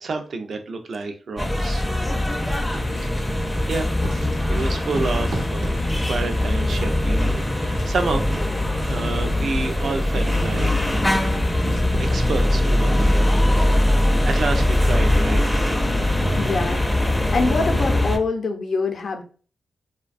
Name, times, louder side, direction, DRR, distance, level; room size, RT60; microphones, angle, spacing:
voice 1, 0.0-1.8 2.2-2.5 3.7-3.9 4.5-8.2 8.9-10.7 11.7-11.8 12.1-13.2 13.9-15.7, right 3 dB, 65° right, 6 dB, 0.4 m, -29 dB
sound 1, 1.4-18.2, left 1 dB, 10° left, 0.4 m, -21 dB
Writing, 2.6-3.7 4.0-15.0, right 1 dB, 90° right, 0.8 m, -37 dB
voice 2, 16.3-19.2, left 4 dB, 65° left, 4 dB, 0.5 m, -25 dB
2.5 x 2.1 x 2.4 m, 0.40 s
cardioid pair, 60°, 0 cm